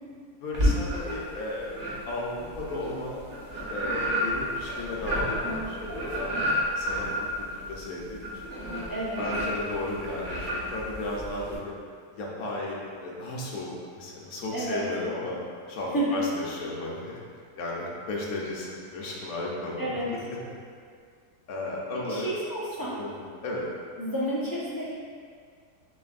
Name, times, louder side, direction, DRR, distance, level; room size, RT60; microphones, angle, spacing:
voice 1, 0.4-1.8 2.1-3.2 3.7-6.4 6.8-7.1 7.4-8.6 9.2-11.7 12.1-15.4 15.7-17.1 17.6-20.2 21.5-22.3 23.0-23.6, left 2 dB, 65° left, -4 dB, 1.2 m, -34 dB
sound 1, 0.5-1.4 1.7-11.6, equal, 35° right, 1.0 m, -30 dB
voice 2, 8.9-9.2 14.5-14.8 15.9-16.2 19.8-20.1 22.1-23.0 24.0-24.9, right 1 dB, 20° left, -9 dB, 0.6 m, -30 dB
6.4 x 3.0 x 2.5 m, 2.1 s
omnidirectional pair, 1.7 m